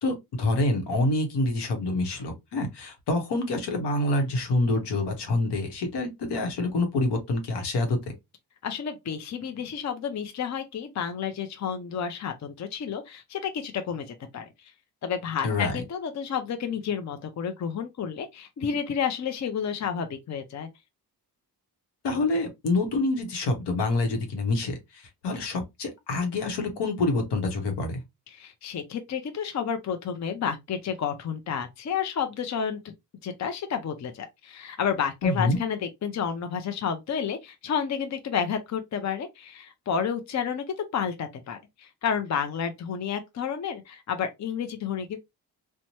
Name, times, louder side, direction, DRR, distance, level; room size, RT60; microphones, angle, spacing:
voice 1, 0.0-8.0 15.4-15.7 22.0-28.0 35.2-35.6, left 2 dB, 80° left, 1.0 m, -27 dB
voice 2, 8.6-14.7 15.0-20.7 28.3-32.9 33.2-45.2, left 7 dB, 45° left, 0.6 m, -31 dB
3.0 x 2.2 x 2.7 m
cardioid pair, 65°, 41 cm